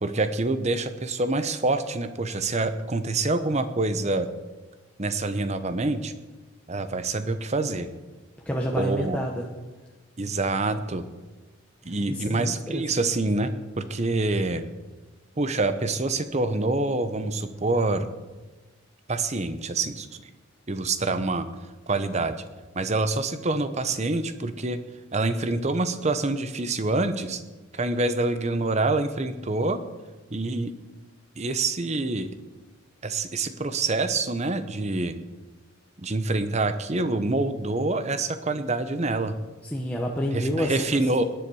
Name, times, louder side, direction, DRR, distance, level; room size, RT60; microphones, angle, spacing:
voice 1, 0.0-4.3 5.0-6.1 6.7-7.9 8.8-9.2 10.2-11.0 11.8-14.6 15.4-18.1 19.1-20.2 20.7-21.5 21.9-22.4 22.7-24.8 25.1-27.4 27.7-29.8 30.3-30.7 31.4-32.3 33.0-35.1 36.0-39.4 40.3-41.2, right 2 dB, 30° right, 11 dB, 0.8 m, -26 dB
voice 2, 8.5-9.5 11.9-13.1 39.6-41.2, equal, 5° left, -2 dB, 1.0 m, -29 dB
18.5 x 10.5 x 4.8 m, 1.2 s
head